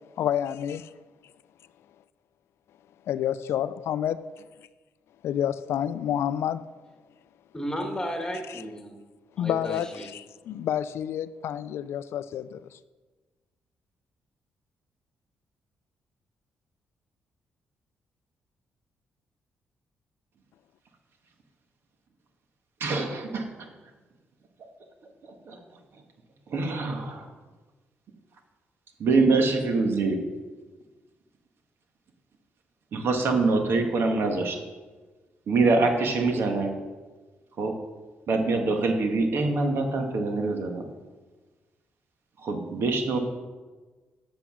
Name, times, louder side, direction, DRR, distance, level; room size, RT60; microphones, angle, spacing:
voice 1, 0.2-0.8 3.1-4.3 5.2-6.7 8.5-8.6 9.4-12.8, left 10 dB, 75° left, 0.3 m, -29 dB
voice 2, 7.5-9.0 9.3-10.1, equal, 15° left, 1.6 m, -33 dB
voice 3, 22.8-23.7 25.5-25.6 26.5-27.3 29.0-30.2 32.9-34.6 35.5-36.7 37.6-37.7 38.3-40.8 42.4-43.2, right 3 dB, 65° right, 1.5 m, -24 dB
7.8 x 6.9 x 6.1 m
cardioid pair, 90°, 4 cm